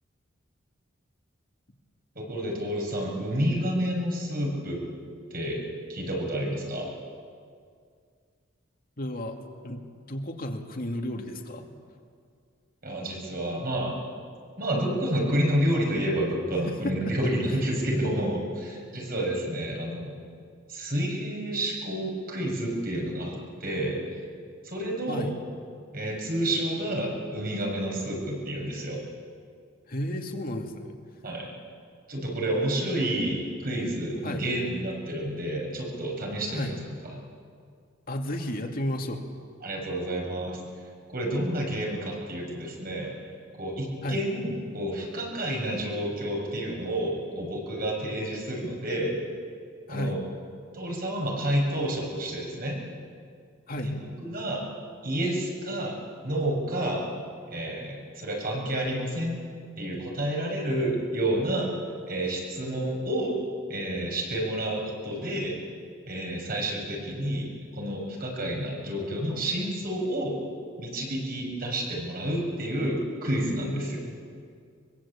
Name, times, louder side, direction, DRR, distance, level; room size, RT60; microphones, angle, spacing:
voice 1, 2.1-4.8 5.3-5.6 5.9-6.9 12.8-14.0 14.6-20.2 20.7-24.0 24.6-25.3 25.9-29.0 31.2-31.5 32.1-36.7 37.0-37.1 39.6-40.6 41.1-43.1 43.6-49.1 49.9-50.2 50.7-52.8 53.8-54.6 55.0-56.0 56.2-57.1 57.5-59.4 59.8-61.7 62.1-63.3 63.7-65.5 66.1-70.4 70.8-74.0, right 1 dB, 50° right, 0 dB, 6.7 m, -29 dB
voice 2, 9.0-9.4 9.6-9.8 10.1-11.7 16.8-17.1 25.1-25.3 29.9-30.9 34.2-34.4 36.5-36.7 38.1-39.2 44.0-44.2 49.9-50.2 53.7-53.9 73.6-74.1, equal, 50° left, 3 dB, 2.4 m, -32 dB
23.5 x 23.5 x 8.7 m, 2.2 s
head